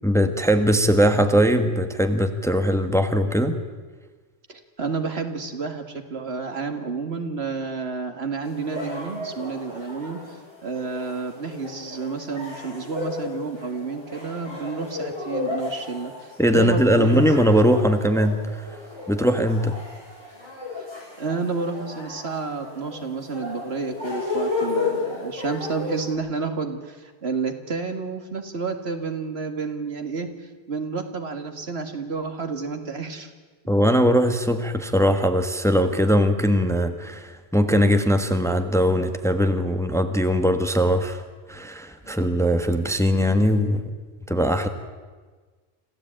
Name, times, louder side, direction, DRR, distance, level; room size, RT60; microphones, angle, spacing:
voice 1, 0.0-3.6 16.4-18.4 19.1-19.7 33.7-41.2 41.5-43.8 44.3-44.7, equal, 5° left, 7 dB, 1.3 m, -20 dB
voice 2, 4.5-10.4 10.6-17.3 20.8-20.9 21.2-30.3 30.7-33.3 42.0-42.1, right 4 dB, 70° right, 7 dB, 2.2 m, -30 dB
sound 1, 8.4-26.1, left 3 dB, 25° left, 7.2 m, -33 dB
26.5 x 15.5 x 8.9 m, 1.4 s
omnidirectional pair, 1.1 m